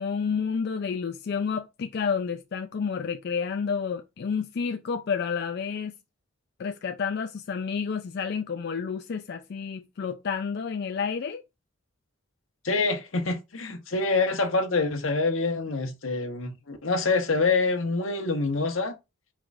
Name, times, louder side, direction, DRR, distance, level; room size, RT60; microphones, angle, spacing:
voice 1, 0.0-5.9 6.6-11.4, left 6 dB, 55° left, 0.4 m, -30 dB
voice 2, 12.6-18.9, left 3 dB, 85° left, 1.0 m, -26 dB
4.7 x 2.4 x 4.0 m
head